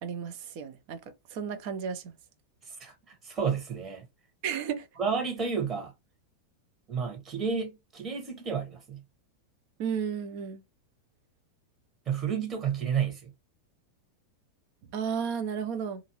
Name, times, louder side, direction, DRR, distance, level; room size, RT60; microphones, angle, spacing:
voice 1, 0.0-1.0 1.3-2.1 4.4-4.9 9.8-10.6 14.9-16.0, right 7 dB, 45° right, 0.6 m, -33 dB
voice 2, 2.8-4.0 5.0-5.9 6.9-9.0 12.1-13.3, right 6 dB, 25° right, 1.1 m, -31 dB
2.6 x 2.5 x 2.9 m
figure-of-eight pair, 90°, 0 cm